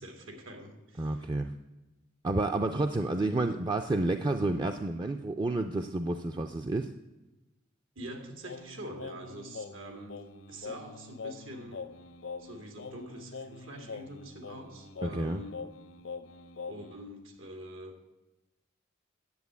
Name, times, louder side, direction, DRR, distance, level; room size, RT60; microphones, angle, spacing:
voice 1, 0.0-1.2 8.0-10.2 10.5-11.8 12.4-15.6 16.7-17.9, right 1 dB, 85° right, 4 dB, 2.3 m, -45 dB
voice 2, 1.0-1.5 2.2-6.9 15.0-15.4, right 2 dB, 25° right, 6 dB, 0.4 m, -30 dB
Singing, 8.4-17.0, left 4 dB, 75° left, 0.7 m, -44 dB
9.5 x 7.9 x 8.2 m, 1.0 s
head